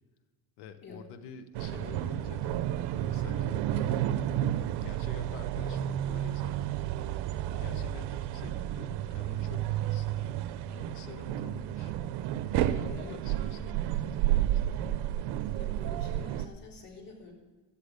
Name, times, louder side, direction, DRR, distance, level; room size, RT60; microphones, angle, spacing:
voice 1, 0.6-2.7 3.0-4.4 4.8-6.9 7.4-10.4 10.7-12.0 12.4-14.9, left 6 dB, 90° left, 9 dB, 1.2 m, -48 dB
sound 1, 1.5-16.5, right 12 dB, 85° right, 0.7 m, -31 dB
voice 2, 15.5-17.3, left 4 dB, 55° left, -2 dB, 3.9 m, -48 dB
12.0 x 10.0 x 5.0 m, 1.3 s
cardioid pair, 115°, 40 cm